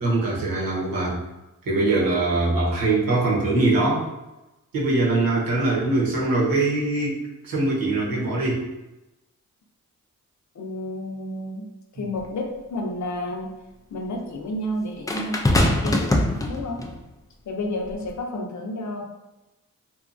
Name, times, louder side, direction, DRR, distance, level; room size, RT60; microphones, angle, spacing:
voice 1, 0.0-1.2 1.7-4.1 4.7-8.7, right 2 dB, 80° right, -5 dB, 1.0 m, -22 dB
voice 2, 10.5-11.7 11.9-13.5 13.9-16.8 17.5-19.0, left 1 dB, 55° left, 1 dB, 0.6 m, -31 dB
sound 1, 12.2-12.3 15.1-17.0 17.9-18.1, left 1 dB, 10° left, 0.3 m, -22 dB
2.7 x 2.3 x 2.5 m, 1.0 s
cardioid pair, 60°, 34 cm